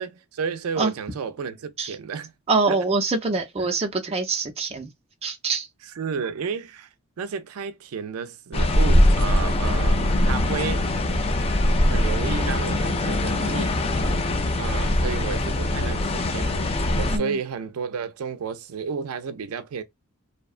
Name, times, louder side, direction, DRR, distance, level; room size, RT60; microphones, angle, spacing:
voice 1, 0.0-2.3 2.7-2.8 5.8-6.9 7.2-10.9 11.9-13.8 14.6-16.6 17.0-19.8, right 6 dB, 80° right, 0.4 m, -32 dB
voice 2, 2.5-4.9 5.2-5.7 17.1-17.4, right 3 dB, 30° right, 0.5 m, -24 dB
sound 1, 8.5-17.2, left 1 dB, 25° left, 0.4 m, -22 dB
2.7 x 2.1 x 2.4 m
head